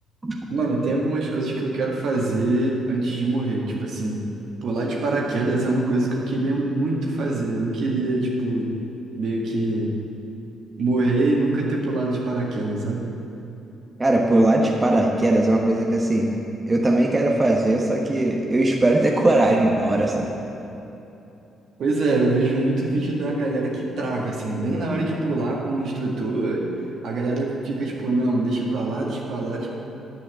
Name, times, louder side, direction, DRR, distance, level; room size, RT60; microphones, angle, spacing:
voice 1, 0.5-4.2 4.6-8.7 9.2-9.9 10.8-13.0 21.8-26.7 27.0-29.7, right 2 dB, 60° right, -2 dB, 1.9 m, -24 dB
voice 2, 14.0-16.3 16.7-20.3, right 1 dB, 25° right, 0 dB, 1.1 m, -19 dB
9.8 x 5.6 x 8.4 m, 2.9 s
hypercardioid pair, 45°, 0 cm